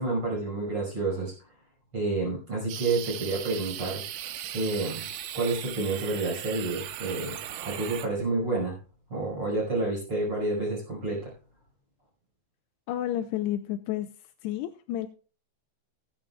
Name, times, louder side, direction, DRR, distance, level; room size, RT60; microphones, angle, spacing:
voice 1, 0.0-1.3 1.9-4.0 4.5-5.1 5.3-7.4 7.6-8.7 9.1-11.3, right 3 dB, 30° right, -2 dB, 5.7 m, -29 dB
sound 1, 2.7-8.1, right 11 dB, 80° right, 3.4 m, -38 dB
voice 2, 12.9-14.1 14.4-15.1, left 12 dB, 80° left, 7 dB, 2.5 m, -30 dB
19.0 x 10.5 x 2.4 m, 0.38 s
omnidirectional pair, 5.3 m